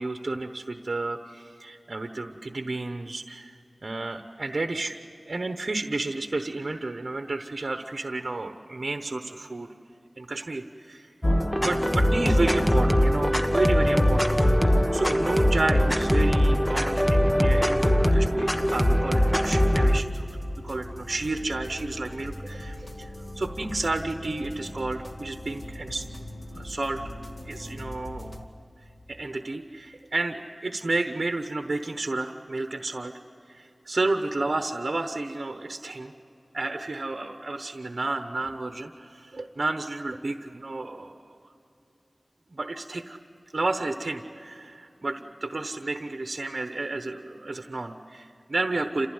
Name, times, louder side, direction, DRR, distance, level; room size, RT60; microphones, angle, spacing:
voice 1, 0.0-5.0 5.3-9.7 10.2-11.1 11.6-26.1 26.5-27.0 27.5-28.5 29.1-33.2 33.5-36.1 36.5-41.3 42.5-43.2 43.5-49.1, right 2 dB, 65° right, 6 dB, 1.0 m, -31 dB
sound 1, 11.2-20.0, equal, 10° left, 1.2 m, -21 dB
sound 2, 19.4-28.4, left 1 dB, 45° left, 2.4 m, -40 dB
28.5 x 15.5 x 9.6 m, 2.9 s
wide cardioid pair, 60°, 0 cm